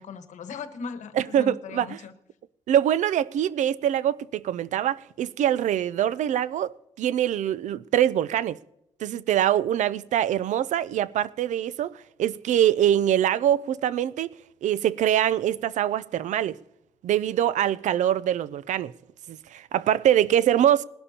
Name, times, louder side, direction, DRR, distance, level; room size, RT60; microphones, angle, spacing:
voice 1, 0.0-2.1, left 5 dB, 85° left, 1.2 m, -38 dB
voice 2, 1.2-2.0 2.7-8.6 9.0-11.9 12.2-14.3 14.6-16.6 17.0-18.9 19.3-20.8, right 11 dB, 90° right, 0.4 m, -24 dB
20.5 x 12.0 x 2.8 m
wide cardioid pair, 160°, 12 cm